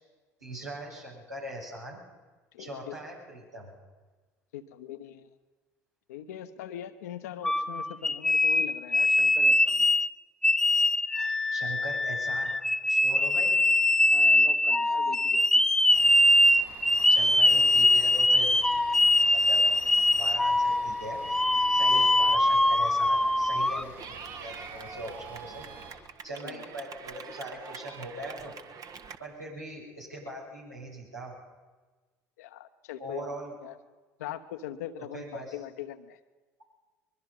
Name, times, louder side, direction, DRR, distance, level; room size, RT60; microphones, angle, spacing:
voice 1, 0.4-2.0 2.6-3.7 11.5-12.6 12.9-13.6 17.1-18.6 19.3-19.6 20.1-21.2 21.7-25.6 26.2-28.5 29.2-31.4 33.0-33.5 35.1-35.6, right 1 dB, 90° right, -5 dB, 7.4 m, -41 dB
voice 2, 2.5-3.0 4.5-5.3 6.1-9.8 13.1-13.2 14.1-15.6 21.9-22.4 26.4-26.6 32.4-33.8 34.2-36.2, left 11 dB, 70° left, 10 dB, 1.1 m, -42 dB
sound 1, 7.4-10.1 10.4-23.8, left 1 dB, 5° left, 0.7 m, -23 dB
Bus / Idling, 15.9-25.9, right 3 dB, 70° right, 7.2 m, -49 dB
Clapping / Cheering, 24.0-29.2, right 6 dB, 40° right, 1.5 m, -44 dB
23.5 x 22.5 x 5.6 m, 1.3 s
figure-of-eight pair, 60°, 9 cm